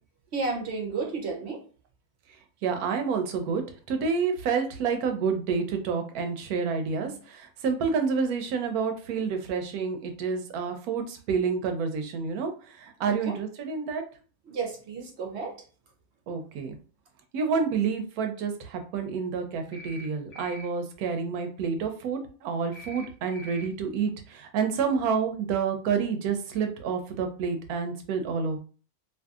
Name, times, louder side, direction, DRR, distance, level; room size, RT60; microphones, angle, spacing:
voice 1, 0.3-1.6 7.0-7.2 13.0-13.4 14.5-15.5, right 4 dB, 55° right, 1 dB, 0.8 m, -32 dB
voice 2, 2.6-12.5 12.8-14.0 16.3-16.8 17.3-28.6, right 5 dB, 85° right, 6 dB, 1.1 m, -29 dB
sound 1, 19.7-20.1 20.3-20.7 22.7-23.1 23.3-23.7, equal, 65° left, 0.9 m, -44 dB
2.6 x 2.6 x 2.3 m, 0.38 s
omnidirectional pair, 1.5 m